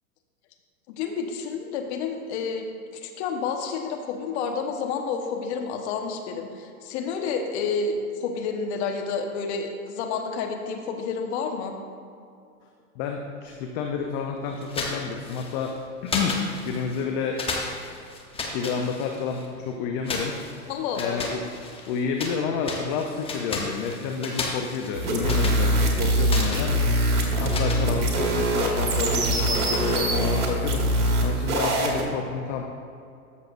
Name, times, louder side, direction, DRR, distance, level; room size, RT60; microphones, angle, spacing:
voice 1, 0.9-2.7 3.0-11.7 20.7-21.2, left 5 dB, 45° left, 4 dB, 1.1 m, -29 dB
voice 2, 13.0-15.8 16.0-17.4 18.5-20.4 20.9-21.4 21.9-27.0 27.4-32.6, left 6 dB, 30° left, 3 dB, 0.5 m, -29 dB
sound 1, 14.6-15.7 16.1-17.0 17.4-19.5 20.0-22.4 22.6-28.4, left 3 dB, 10° left, 0.9 m, -34 dB
sound 2, 24.9-32.0, right 1 dB, 70° right, 2.0 m, -23 dB
13.5 x 6.5 x 2.5 m, 2.4 s
hypercardioid pair, 115°, 45 cm